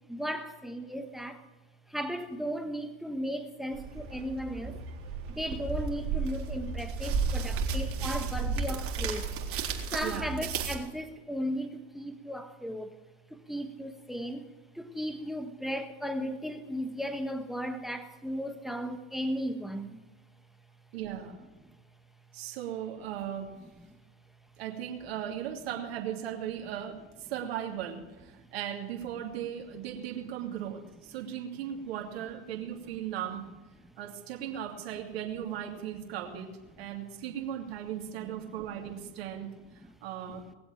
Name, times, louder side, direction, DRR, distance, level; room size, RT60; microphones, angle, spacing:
voice 1, 0.1-1.4 1.9-4.8 5.3-9.3 9.9-13.0 13.3-14.5 14.7-20.0 38.2-38.3 39.8-39.9, equal, ahead, 1.5 m, -36 dB
sound 1, 3.7-10.8, right 5 dB, 45° right, 3.5 m, -33 dB
voice 2, 20.9-21.4 22.3-23.5 24.6-33.4 34.0-36.5 36.8-40.4, right 10 dB, 75° right, 2.8 m, -37 dB
20.0 x 7.9 x 9.2 m
hypercardioid pair, 100°, 31 cm